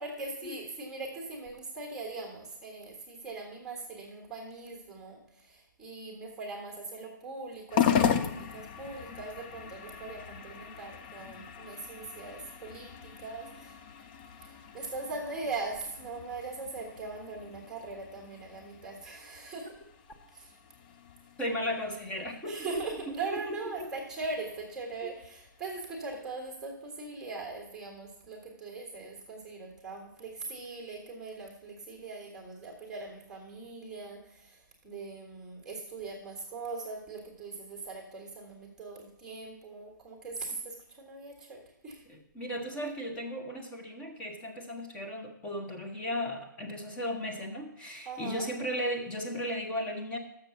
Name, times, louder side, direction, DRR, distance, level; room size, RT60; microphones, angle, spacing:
voice 1, 0.0-13.8 14.2-19.7 20.3-20.6 22.4-42.0 48.0-48.5, right 3 dB, 5° right, 0 dB, 1.6 m, -41 dB
sound 1, 7.7-26.3, left 8 dB, 25° left, 0.4 m, -37 dB
voice 2, 21.4-22.8 23.2-23.9 25.0-25.1 42.1-50.2, equal, 10° left, 2 dB, 1.0 m, -36 dB
6.8 x 6.7 x 7.0 m, 0.83 s
hypercardioid pair, 155°, 11 cm